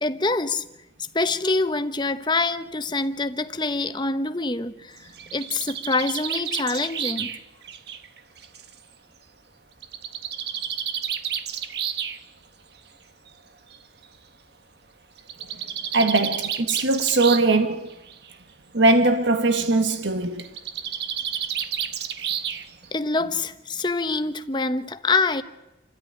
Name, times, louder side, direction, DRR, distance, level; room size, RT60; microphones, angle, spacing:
voice 1, 0.0-0.6 1.1-5.0 5.3-7.4 22.9-25.4, left 3 dB, 25° left, 1.1 m, -25 dB
Bird, 5.0-8.7 9.8-12.2 13.3-13.4 13.7-13.8 14.0-14.1 15.2-17.6 17.9-18.4 20.4-22.9, right 9 dB, 60° right, 1.4 m, -31 dB
voice 2, 15.9-17.9 18.7-20.5, right 2 dB, 80° right, 1.4 m, -20 dB
29.0 x 14.0 x 9.9 m
head